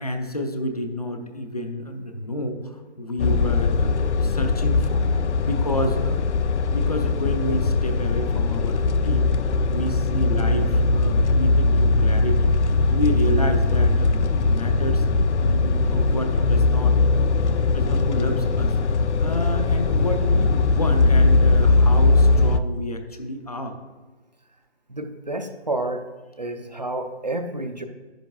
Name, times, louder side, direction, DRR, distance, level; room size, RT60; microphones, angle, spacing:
voice 1, 0.0-5.0 5.4-6.2 6.6-9.3 9.7-15.0 15.4-18.7 19.2-23.8, equal, 35° left, 6 dB, 0.7 m, -30 dB
sound 1, 3.2-22.6, left 3 dB, 90° left, 0.6 m, -20 dB
voice 2, 24.9-26.1 26.4-27.9, right 2 dB, 40° right, 6 dB, 0.5 m, -29 dB
10.5 x 9.4 x 2.3 m, 1.3 s
hypercardioid pair, 175°, 33 cm